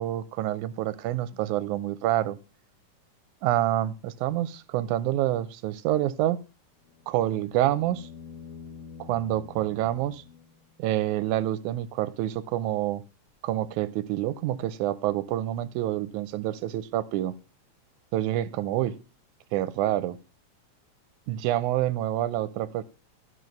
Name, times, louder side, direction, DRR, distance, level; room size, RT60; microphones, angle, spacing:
voice 1, 0.0-2.4 3.4-6.4 7.1-8.1 9.0-10.2 10.8-13.0 13.4-17.3 18.1-19.0 19.5-20.2 21.3-22.8, right 13 dB, 85° right, 2.0 m, -27 dB
sound 1, 6.8-10.9 13.3-13.4, left 6 dB, 70° left, 0.8 m, -47 dB
12.5 x 4.5 x 5.1 m
omnidirectional pair, 3.4 m